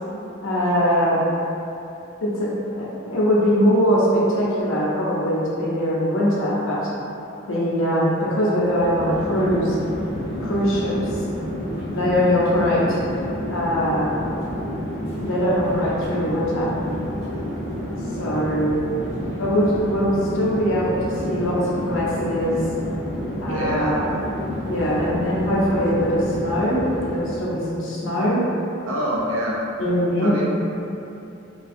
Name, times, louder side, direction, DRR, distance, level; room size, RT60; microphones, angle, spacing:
voice 1, 0.4-1.2 2.2-6.9 7.5-9.8 10.4-11.2 11.9-13.0 13.5-14.1 15.2-16.7 18.2-18.8 19.4-22.6 23.4-24.1 24.6-28.4 29.8-30.4, equal, 80° left, -6 dB, 0.6 m, -22 dB
Chatter / Fixed-wing aircraft airplane, 8.6-27.5, equal, 30° right, 0.6 m, -30 dB
voice 2, 23.5-24.0 28.9-29.6 30.2-30.4, equal, 80° right, -4 dB, 0.5 m, -25 dB
2.5 x 2.2 x 2.4 m, 2.8 s
head